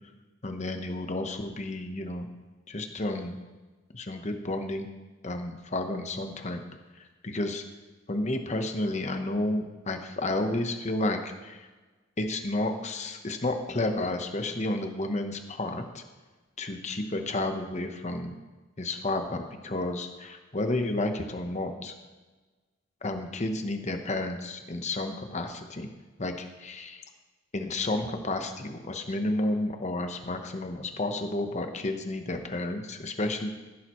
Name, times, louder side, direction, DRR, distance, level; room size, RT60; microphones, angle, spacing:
voice 1, 0.4-2.3 2.7-3.4 3.9-4.9 5.2-6.6 7.2-7.6 8.1-11.7 12.2-16.0 16.6-18.4 18.8-21.9 23.0-25.9 26.2-27.0 27.5-33.5, left 2 dB, 35° left, 6 dB, 1.0 m, -31 dB
15.0 x 11.5 x 3.1 m, 1.3 s
head